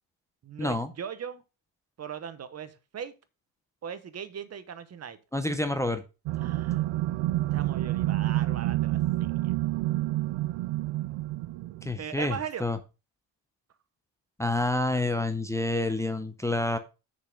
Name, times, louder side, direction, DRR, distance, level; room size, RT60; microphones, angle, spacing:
voice 1, 0.4-1.4 2.0-3.1 3.8-5.2 5.6-5.7 6.3-6.9 7.5-9.5 12.0-12.6, right 8 dB, 35° right, 0.8 m, -39 dB
voice 2, 5.3-6.0 11.8-12.8 14.4-16.8, left 2 dB, 5° left, 0.5 m, -28 dB
sound 1, 6.3-11.9, right 16 dB, 65° right, 0.5 m, -28 dB
6.9 x 5.4 x 5.1 m
cardioid pair, 165°, 48 cm